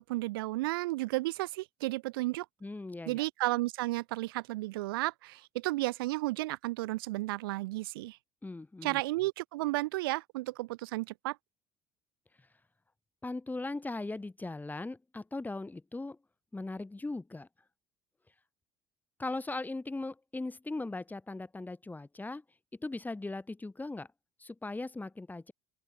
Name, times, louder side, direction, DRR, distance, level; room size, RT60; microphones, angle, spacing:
voice 1, 0.0-2.5 3.1-8.2 8.8-11.4, right 20 dB, 80° right, 1.1 m, -33 dB
voice 2, 2.6-3.2 8.4-9.0 13.2-16.2 16.5-17.5 19.2-22.4 22.8-24.1 24.4-25.5, left 2 dB, 15° left, 4.0 m, -39 dB
open air
hypercardioid pair, 70°, 12 cm